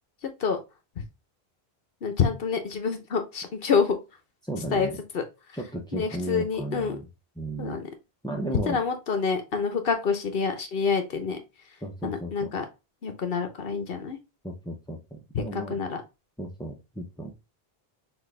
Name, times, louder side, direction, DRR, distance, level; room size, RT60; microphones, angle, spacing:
voice 1, 0.2-0.6 1.0-1.1 2.0-4.0 4.7-5.2 5.9-7.0 7.6-7.9 8.7-11.4 12.0-12.6 13.0-14.2 15.3-16.0, left 5 dB, 65° left, 6 dB, 1.0 m, -27 dB
voice 2, 4.4-5.0 5.5-7.0 7.4-7.8 8.2-8.8 11.8-12.5 14.4-15.8 16.4-17.3, right 1 dB, 5° left, 0 dB, 0.5 m, -34 dB
6.1 x 2.4 x 3.2 m, 0.27 s
omnidirectional pair, 1.0 m